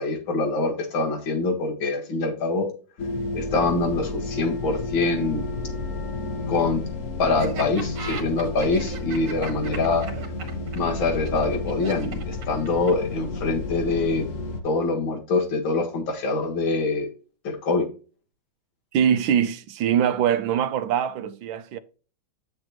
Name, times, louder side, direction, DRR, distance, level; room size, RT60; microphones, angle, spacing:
voice 1, 0.0-2.7 3.3-5.5 6.5-6.8 7.2-10.1 10.7-14.3 14.6-17.1 17.4-17.9, left 3 dB, 90° left, 2.4 m, -24 dB
sound 1, 3.0-14.6, left 2 dB, 50° left, 1.3 m, -31 dB
Laughter, 7.4-13.1, right 5 dB, 65° right, 2.2 m, -37 dB
voice 2, 18.9-21.8, right 9 dB, 80° right, 1.5 m, -23 dB
8.0 x 6.2 x 2.9 m
omnidirectional pair, 2.1 m